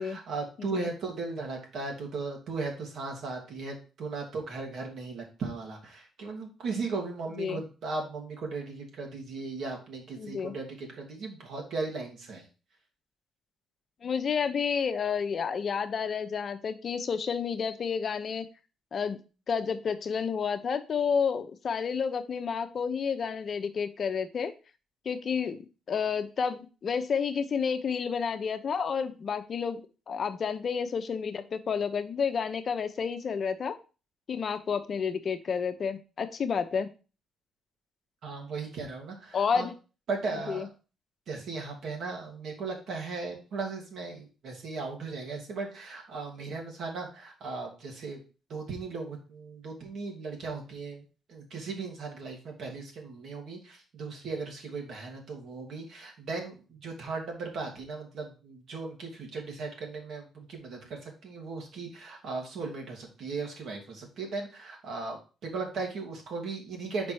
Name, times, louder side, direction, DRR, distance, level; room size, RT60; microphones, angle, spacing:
voice 1, 0.0-12.4 38.2-39.7 40.1-40.6 41.3-48.2 48.5-51.0 51.3-67.1, right 4 dB, 70° right, 1 dB, 2.2 m, -37 dB
voice 2, 0.6-0.9 7.4-7.6 10.1-10.5 14.0-18.5 18.9-19.2 19.5-24.5 25.0-29.8 30.1-33.8 34.3-36.9 39.3-39.7 40.5-40.7, left 6 dB, 50° left, 9 dB, 0.8 m, -30 dB
5.2 x 4.3 x 4.7 m, 0.34 s
cardioid pair, 90°, 0 cm